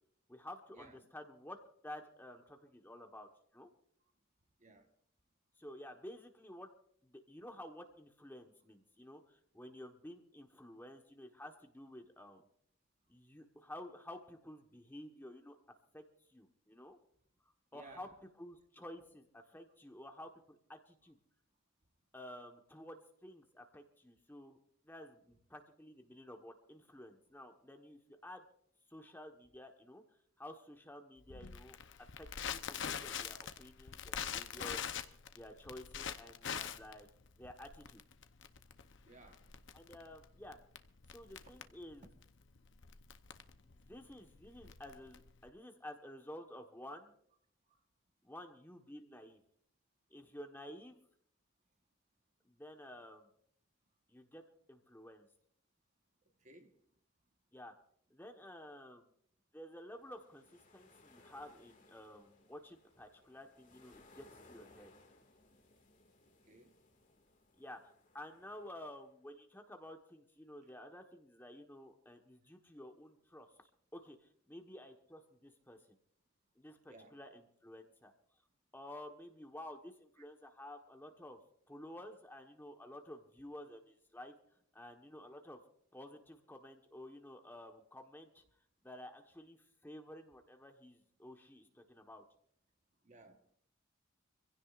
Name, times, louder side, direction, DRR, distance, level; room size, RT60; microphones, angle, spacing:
voice 1, 0.3-1.6 1.8-3.7 5.6-6.7 7.0-12.4 13.1-15.6 15.9-16.0 16.3-17.0 17.4-21.2 22.1-24.6 24.8-28.4 28.9-30.0 30.4-31.8 32.2-37.1 37.3-38.0 39.7-40.6 41.1-42.1 43.6-47.1 48.2-49.4 50.1-51.0 52.4-53.3 54.1-54.4 54.7-55.3 57.5-57.7 58.1-59.1 59.5-64.9 67.6-73.5 73.9-76.0 76.6-78.1 78.7-81.4 81.7-84.3 84.7-85.6 85.9-88.4 88.8-92.2, left 1 dB, 10° left, 1.2 m, -52 dB
voice 2, 17.7-18.1 39.0-39.5 47.7-47.8 56.4-56.7 66.5-66.8 76.9-77.1 80.4-80.5 93.0-93.4, right 2 dB, 35° right, 1.2 m, -58 dB
Crackle, 31.3-45.5, left 8 dB, 60° left, 0.7 m, -44 dB
sound 1, 59.9-69.1, left 2 dB, 40° left, 2.0 m, -65 dB
26.0 x 16.0 x 2.5 m
head